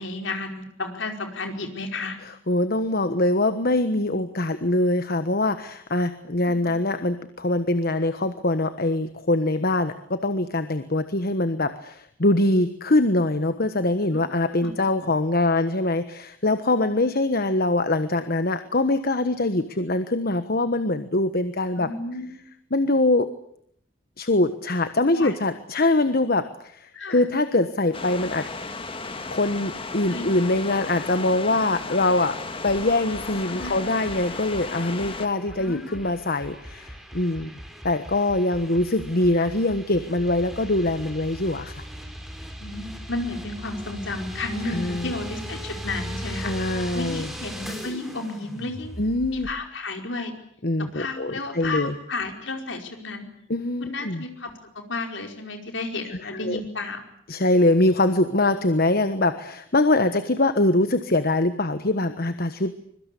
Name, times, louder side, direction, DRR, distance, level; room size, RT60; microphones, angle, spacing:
voice 1, 0.0-2.2 6.6-6.7 14.1-14.2 14.6-14.7 21.8-22.3 25.0-25.3 26.9-27.3 30.1-30.3 33.5-33.8 35.6-36.0 42.6-48.9 49.3-50.3 50.9-53.2 53.8-57.0, left 2 dB, 65° left, 4 dB, 5.1 m, -32 dB
voice 2, 2.5-21.9 22.7-23.3 24.2-28.5 29.3-32.4 32.6-37.5 37.8-41.8 44.6-45.1 46.4-47.3 49.0-49.5 50.6-51.9 53.5-54.2 56.3-56.6 57.3-62.7, left 2 dB, 50° left, 10 dB, 1.3 m, -23 dB
sound 1, 27.9-35.3, left 3 dB, 25° left, 2.0 m, -35 dB
sound 2, 32.7-49.5, equal, ahead, 4.4 m, -39 dB
25.0 x 23.0 x 8.4 m, 0.69 s
head